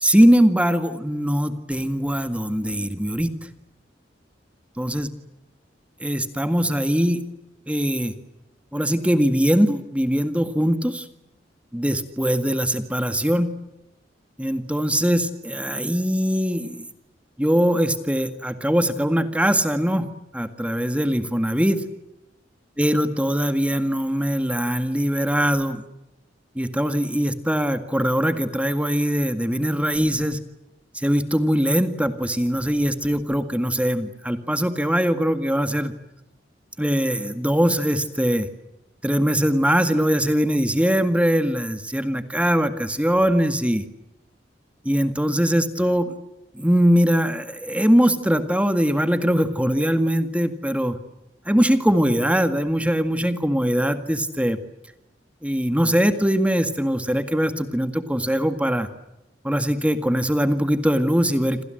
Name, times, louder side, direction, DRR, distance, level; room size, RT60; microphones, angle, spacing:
voice 1, 0.0-3.3 4.8-5.1 6.0-7.2 7.7-8.1 8.7-11.1 11.7-13.5 14.4-16.9 17.4-21.9 22.8-25.8 26.6-30.4 30.9-35.9 36.8-38.5 39.0-43.8 44.9-46.1 46.5-51.0 51.5-54.6 55.4-58.9 59.4-61.6, equal, 5° right, 8 dB, 1.8 m, -21 dB
28.0 x 27.5 x 7.8 m, 0.91 s
head